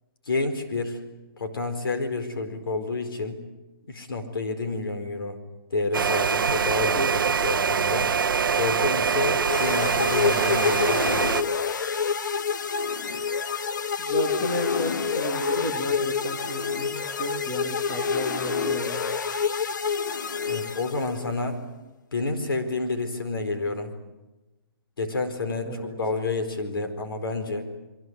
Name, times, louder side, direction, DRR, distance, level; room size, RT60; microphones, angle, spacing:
voice 1, 0.3-1.0 1.4-3.4 3.9-5.4 5.7-8.1 8.6-11.3 20.5-21.6 22.1-23.9 25.0-27.6, left 3 dB, 70° left, 7 dB, 4.4 m, -29 dB
sound 1, 5.9-11.4, right 6 dB, 60° right, 0.9 m, -24 dB
sound 2, 9.5-21.3, left 6 dB, 50° left, 1.1 m, -28 dB
voice 2, 14.0-19.1 25.7-26.0, equal, 25° left, 2 dB, 2.8 m, -32 dB
26.5 x 23.0 x 8.0 m, 1.1 s
hypercardioid pair, 180°, 12 cm